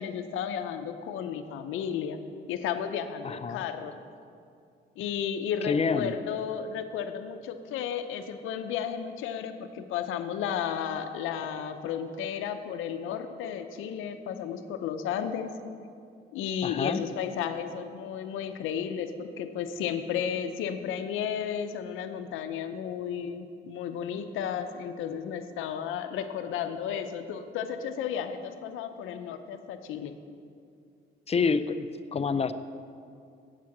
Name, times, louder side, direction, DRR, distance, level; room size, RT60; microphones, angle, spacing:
voice 1, 0.0-2.2 2.5-3.9 5.0-15.6 16.3-30.1, left 8 dB, 90° left, 8 dB, 0.7 m, -33 dB
voice 2, 3.2-3.6 5.6-6.2 16.6-17.0 31.3-32.5, left 5 dB, 30° left, 12 dB, 0.5 m, -28 dB
8.3 x 7.5 x 7.2 m, 2.4 s
cardioid pair, 90°, 20 cm